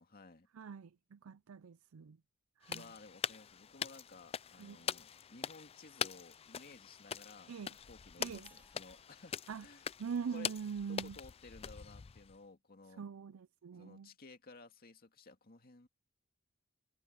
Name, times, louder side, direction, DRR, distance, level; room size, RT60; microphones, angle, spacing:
voice 1, 0.0-0.5 2.7-7.5 7.9-9.9 10.3-10.5 10.9-13.0 13.7-15.9, left 3 dB, 45° left, 2.1 m, -56 dB
voice 2, 0.5-2.2 2.6-2.8 4.6-4.8 7.5-7.7 8.2-8.5 9.5-9.7 10.0-11.2 13.0-14.1, right 6 dB, 85° right, 0.5 m, -43 dB
sound 1, 2.6-12.4, left 8 dB, 30° left, 0.4 m, -43 dB
sound 2, 8.4-10.9, right 2 dB, 10° right, 3.7 m, -70 dB
head